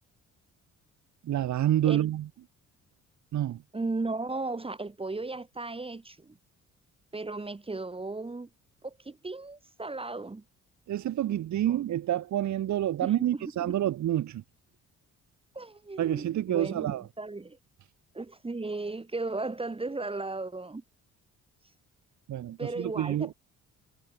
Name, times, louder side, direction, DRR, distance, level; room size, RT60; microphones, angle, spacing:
voice 1, 1.3-2.2 3.3-3.6 10.9-14.4 16.0-17.0 22.3-23.3, right 12 dB, 70° right, 1.7 m, -28 dB
voice 2, 3.7-6.4 7.1-8.5 8.8-10.4 11.3-11.4 11.7-11.8 13.0-13.7 15.5-17.6 18.1-20.8 22.6-23.3, right 3 dB, 20° right, 2.2 m, -36 dB
cardioid pair, 90°, 30 cm